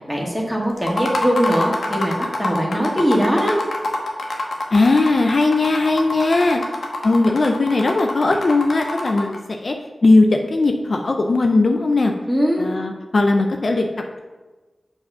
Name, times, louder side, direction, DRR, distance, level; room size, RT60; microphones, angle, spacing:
voice 1, 0.1-3.5 12.3-12.7, equal, ahead, -2 dB, 2.0 m, -21 dB
sound 1, 0.8-9.4, left 1 dB, 85° left, 1.1 m, -26 dB
voice 2, 4.7-6.6 7.0-9.7 10.0-12.1 12.6-13.9, left 2 dB, 60° left, 4 dB, 0.6 m, -18 dB
7.7 x 4.9 x 5.6 m, 1.3 s
wide cardioid pair, 75°, 0 cm